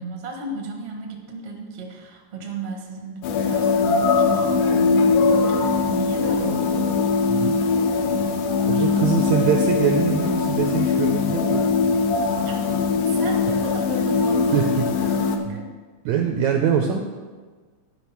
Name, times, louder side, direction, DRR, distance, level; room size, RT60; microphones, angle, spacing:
voice 1, 0.0-7.1 8.6-9.5 12.4-15.7, right 3 dB, 50° right, 1 dB, 0.7 m, -34 dB
sound 1, 3.2-15.4, left 4 dB, 75° left, 2.2 m, -21 dB
voice 2, 8.7-11.7 14.5-15.2 16.0-17.0, right 7 dB, 80° right, 3 dB, 1.7 m, -23 dB
12.0 x 5.4 x 6.0 m, 1.4 s
omnidirectional pair, 4.0 m